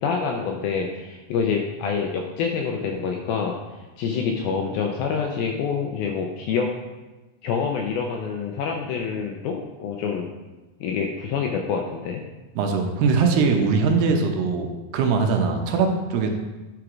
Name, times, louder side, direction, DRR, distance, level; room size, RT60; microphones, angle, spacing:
voice 1, 0.0-3.6 4.0-6.7 7.4-10.3 10.8-12.2, left 6 dB, 80° left, 2 dB, 2.2 m, -26 dB
voice 2, 12.6-16.3, right 5 dB, 80° right, 3 dB, 2.8 m, -21 dB
10.0 x 5.0 x 4.6 m, 1.1 s
omnidirectional pair, 4.9 m